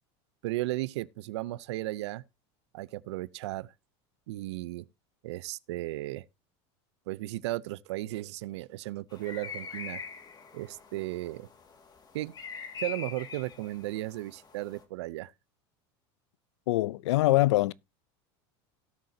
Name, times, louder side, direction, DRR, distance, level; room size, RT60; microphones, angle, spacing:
voice 1, 0.4-2.2 2.7-3.7 4.3-4.9 5.2-6.2 7.1-10.0 10.5-11.5 12.1-12.3 12.8-15.3, right 17 dB, 85° right, 0.6 m, -35 dB
sound 1, 9.1-14.8, left 6 dB, 30° left, 2.1 m, -43 dB
voice 2, 16.7-17.7, left 17 dB, 85° left, 0.5 m, -23 dB
17.5 x 6.5 x 2.8 m
supercardioid pair, 120°, 14 cm